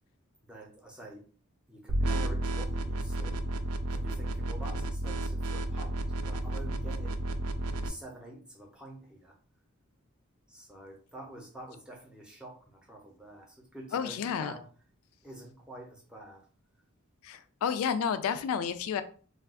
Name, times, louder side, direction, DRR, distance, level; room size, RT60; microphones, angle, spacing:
voice 1, 0.4-1.3 1.7-3.4 3.9-6.0 6.2-7.2 7.8-9.4 10.5-14.7 15.2-16.5, right 1 dB, 5° right, -1 dB, 0.6 m, -47 dB
sound 1, 1.9-7.9, right 1 dB, 85° right, 0.4 m, -32 dB
voice 2, 13.9-14.5 17.2-19.0, left 7 dB, 80° left, 11 dB, 0.3 m, -31 dB
2.4 x 2.3 x 3.5 m, 0.41 s
head